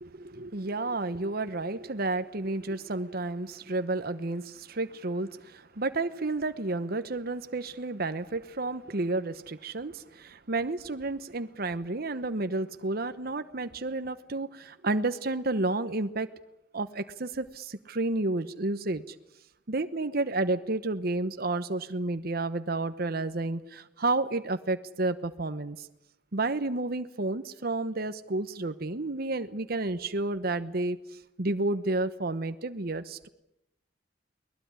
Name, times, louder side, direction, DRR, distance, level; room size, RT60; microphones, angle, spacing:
voice 1, 0.0-16.3 16.7-19.1 19.7-25.9 26.3-31.0 31.4-33.3, right 2 dB, 55° right, 11 dB, 1.0 m, -31 dB
23.0 x 19.5 x 9.7 m, 0.87 s
head